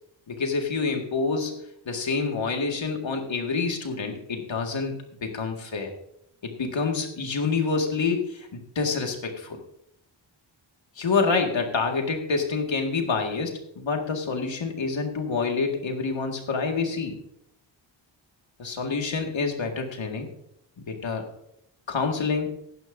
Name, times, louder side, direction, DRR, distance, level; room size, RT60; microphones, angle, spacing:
voice 1, 0.3-1.6 1.9-5.9 6.4-9.6 11.0-17.2 18.6-20.3 20.9-21.2 21.9-22.5, left 4 dB, 70° left, 3 dB, 2.0 m, -27 dB
16.0 x 11.0 x 2.6 m, 0.74 s
wide cardioid pair, 145°, 47 cm